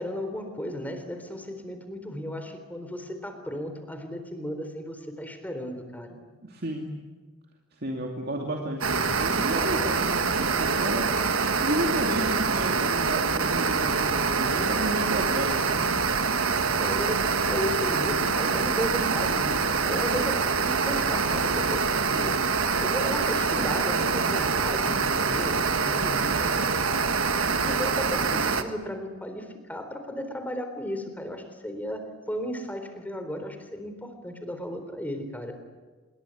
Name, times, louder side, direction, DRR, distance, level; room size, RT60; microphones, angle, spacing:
voice 1, 0.0-6.2 12.8-12.9 16.8-27.0 27.5-35.6, equal, 10° left, 7 dB, 3.8 m, -35 dB
voice 2, 6.4-6.9 7.8-11.1 11.6-16.0, right 1 dB, 50° right, 1 dB, 2.6 m, -32 dB
sound 1, 8.8-28.6, right 5 dB, 70° right, 1.6 m, -25 dB
27.0 x 22.0 x 9.6 m, 1.4 s
head